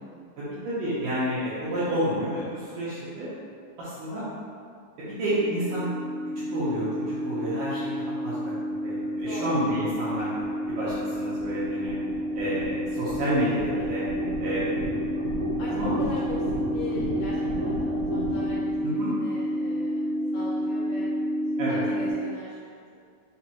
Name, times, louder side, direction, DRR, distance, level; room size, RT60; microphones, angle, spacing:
voice 1, 0.4-3.4 3.8-4.3 5.2-5.9 6.5-8.5 8.8-10.3 10.8-11.9 12.4-14.0 14.4-14.7 15.7-16.0 18.8-19.1 21.6-21.8, right 1 dB, 80° right, -11 dB, 1.9 m, -29 dB
sound 1, 5.2-22.1, equal, 60° right, 1.8 m, -29 dB
voice 2, 9.2-9.6 15.6-15.7 16.0-16.4 16.7-17.4 17.6-21.1 21.7-22.7, left 2 dB, 75° left, -9 dB, 2.2 m, -40 dB
6.0 x 2.9 x 2.2 m, 2.2 s
omnidirectional pair, 4.4 m